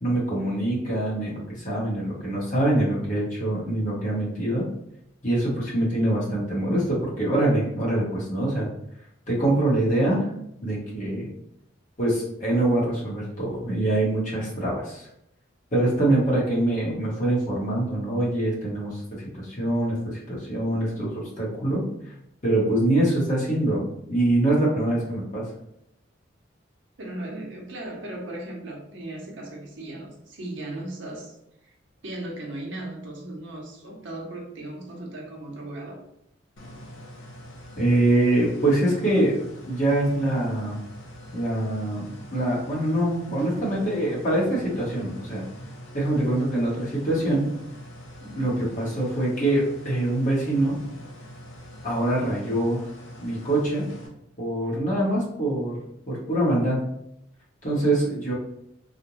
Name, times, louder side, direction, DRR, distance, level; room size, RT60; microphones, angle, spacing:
voice 1, 0.0-4.6 5.2-8.7 9.3-10.3 10.6-11.3 12.0-15.1 15.7-19.0 19.3-21.8 22.4-25.4 37.8-39.4 39.7-40.8 41.3-42.1 42.3-45.4 45.9-47.5 48.4-50.8 51.8-52.8 53.2-53.8 54.4-55.8 56.1-56.8 57.6-58.3, right 1 dB, 40° left, -6 dB, 0.9 m, -24 dB
voice 2, 27.0-31.4 31.6-31.7 32.0-36.0 48.2-48.7, right 1 dB, 65° right, -1 dB, 0.7 m, -37 dB
sound 1, 36.6-54.1, equal, 75° left, 0.6 m, -43 dB
2.5 x 2.1 x 2.9 m, 0.76 s
head